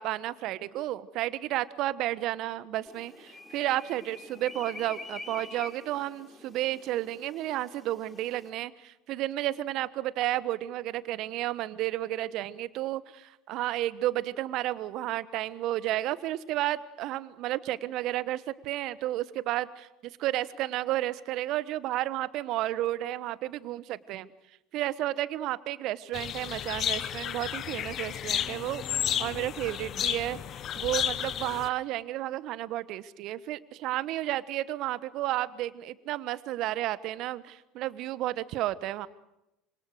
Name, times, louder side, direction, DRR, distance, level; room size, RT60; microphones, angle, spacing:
voice 1, 0.0-19.9 20.2-24.3 24.7-39.1, right 15 dB, 55° right, 17 dB, 1.2 m, -32 dB
sound 1, 2.9-8.5, left 3 dB, 20° left, 3.9 m, -46 dB
sound 2, 26.1-31.7, left 10 dB, 45° left, 1.2 m, -32 dB
27.0 x 26.5 x 6.5 m, 0.91 s
hypercardioid pair, 70°, 0 cm